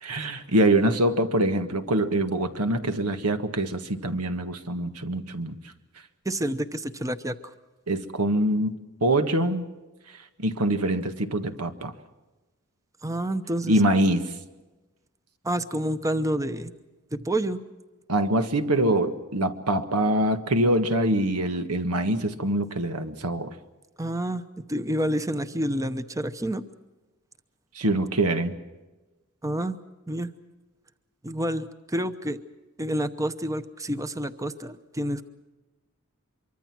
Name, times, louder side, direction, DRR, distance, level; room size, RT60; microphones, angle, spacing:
voice 1, 0.0-5.6 7.9-8.7 9.0-9.7 10.4-11.9 13.7-14.2 18.1-23.5 27.7-28.5, right 1 dB, 90° right, 8 dB, 1.6 m, -24 dB
voice 2, 6.2-7.5 13.0-13.8 15.4-16.7 17.1-17.6 24.0-24.4 24.7-26.6 29.4-29.8 30.1-30.3 31.2-32.4 32.8-35.2, right 1 dB, 15° right, 10 dB, 0.8 m, -28 dB
25.0 x 24.0 x 6.1 m, 1.2 s
head